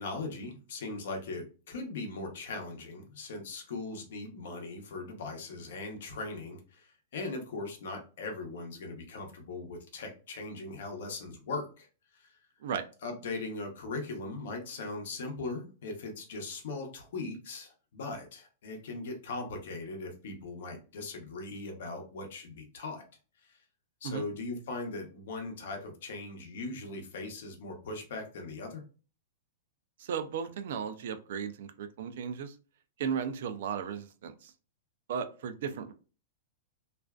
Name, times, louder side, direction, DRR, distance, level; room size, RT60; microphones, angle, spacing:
voice 1, 0.0-6.9 7.1-11.9 12.1-12.3 13.0-23.0 23.4-23.6 24.0-28.8, left 3 dB, 70° left, 3 dB, 0.8 m, -39 dB
voice 2, 30.0-32.6 33.0-34.5 35.1-35.9, right 7 dB, 65° right, 10 dB, 0.4 m, -35 dB
2.4 x 2.3 x 2.2 m, 0.36 s
supercardioid pair, 155°, 0 cm